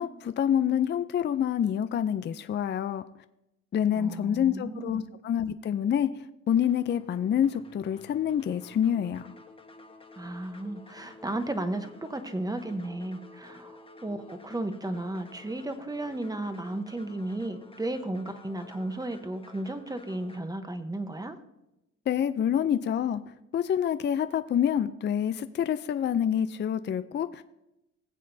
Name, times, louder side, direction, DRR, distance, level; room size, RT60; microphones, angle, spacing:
voice 1, 0.0-3.0 3.7-9.3 22.1-23.2 23.5-27.4, left 9 dB, 35° left, 12 dB, 0.4 m, -27 dB
voice 2, 3.9-5.1 10.2-21.4, right 1 dB, 10° right, 9 dB, 0.9 m, -34 dB
sound 1, 6.7-20.4, left 3 dB, 20° left, 1.2 m, -52 dB
19.5 x 7.5 x 2.7 m, 0.91 s
cardioid pair, 90°, 30 cm